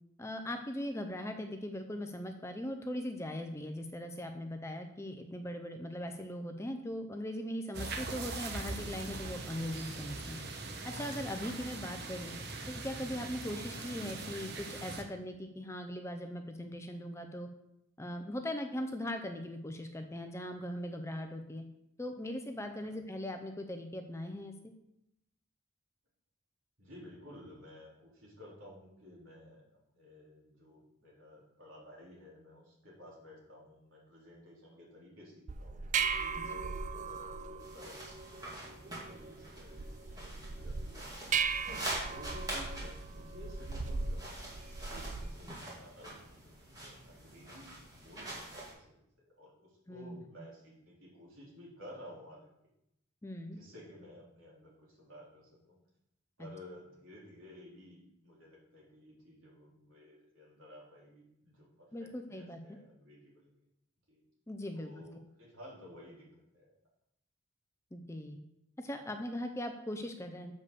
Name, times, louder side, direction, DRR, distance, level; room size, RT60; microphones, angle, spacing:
voice 1, 0.2-10.4 10.8-12.3 12.7-17.5 18.0-21.6 22.0-24.5 36.4-36.5 49.9-50.2 53.2-53.6 56.4-56.5 61.9-62.6 64.5-64.9 67.9-68.4 68.8-70.5, left 1 dB, 15° left, 6 dB, 0.5 m, -40 dB
sound 1, 7.7-15.0, right 3 dB, 50° right, 1.0 m, -41 dB
voice 2, 26.8-38.3 38.6-47.7 48.0-52.5 53.4-55.8 56.4-63.5 64.1-64.2 64.7-66.7, left 1 dB, 70° right, -5 dB, 3.5 m, -54 dB
sound 2, 35.5-45.4, right 5 dB, 35° right, 0.4 m, -38 dB
sound 3, 37.6-48.7, right 1 dB, 20° right, 2.2 m, -45 dB
6.9 x 5.4 x 6.7 m, 0.81 s
head